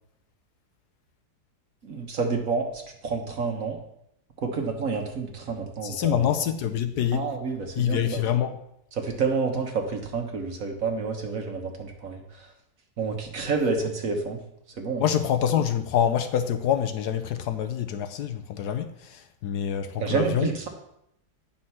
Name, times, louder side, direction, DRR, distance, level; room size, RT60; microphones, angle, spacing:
voice 1, 1.8-3.8 4.4-6.2 7.1-8.2 9.0-12.5 13.0-14.4 14.8-15.0 20.0-20.7, right 4 dB, 55° right, 3 dB, 1.4 m, -29 dB
voice 2, 5.8-7.3 7.8-8.5 15.0-20.5, left 9 dB, 75° left, 9 dB, 1.2 m, -26 dB
9.4 x 4.3 x 5.7 m, 0.78 s
omnidirectional pair, 1.8 m